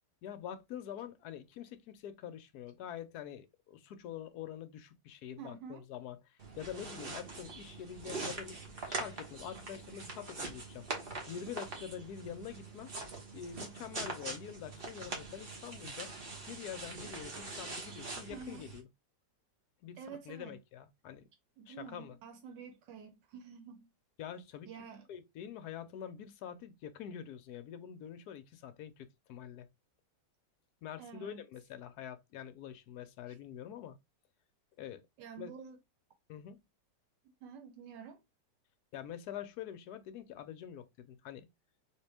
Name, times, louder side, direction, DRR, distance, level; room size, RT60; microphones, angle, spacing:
voice 1, 0.2-10.9 11.3-12.9 13.3-16.1 16.5-18.9 19.8-21.3 21.7-22.2 24.2-24.7 25.1-29.7 30.8-34.0 34.8-35.0 35.4-35.5 36.3-36.6 38.9-41.5, left 9 dB, 70° left, 1.0 m, -46 dB
voice 2, 5.4-5.9 18.3-18.6 20.0-20.6 21.6-23.9 24.7-25.0 31.0-31.4 35.2-35.8 37.4-38.2, right 6 dB, 80° right, 1.3 m, -48 dB
sound 1, 6.4-18.8, right 3 dB, 40° right, 1.0 m, -43 dB
3.6 x 2.8 x 3.3 m
omnidirectional pair, 1.9 m